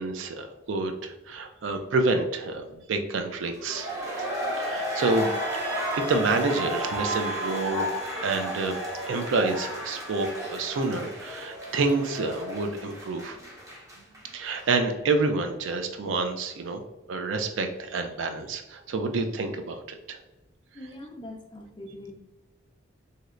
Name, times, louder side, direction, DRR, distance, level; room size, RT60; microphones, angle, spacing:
voice 1, 0.0-3.9 4.6-5.3 5.9-7.9 8.2-8.8 9.1-13.4 14.3-16.8 17.1-20.2, right 3 dB, 75° right, 6 dB, 0.4 m, -28 dB
sound 1, 3.4-14.3 14.6-14.7, equal, 15° right, 0.7 m, -33 dB
sound 2, 4.8-10.6, equal, 50° right, 0.8 m, -45 dB
voice 2, 20.7-22.1, left 1 dB, 25° left, 1 dB, 0.4 m, -42 dB
3.1 x 2.7 x 2.5 m, 1.1 s
head